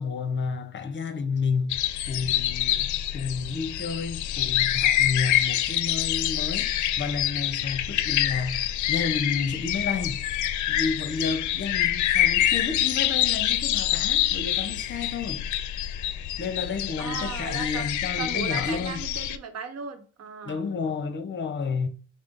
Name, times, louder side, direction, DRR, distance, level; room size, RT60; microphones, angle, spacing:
voice 1, 0.0-1.8 2.1-10.3 10.7-15.5 16.4-19.0 20.4-21.9, left 5 dB, 40° left, 0.8 m, -31 dB
sound 1, 1.7-19.4, left 12 dB, 75° left, 0.5 m, -26 dB
voice 2, 17.0-17.8 18.2-20.6, right 6 dB, 55° right, 1.0 m, -36 dB
6.0 x 2.1 x 3.9 m
cardioid pair, 90°, 30 cm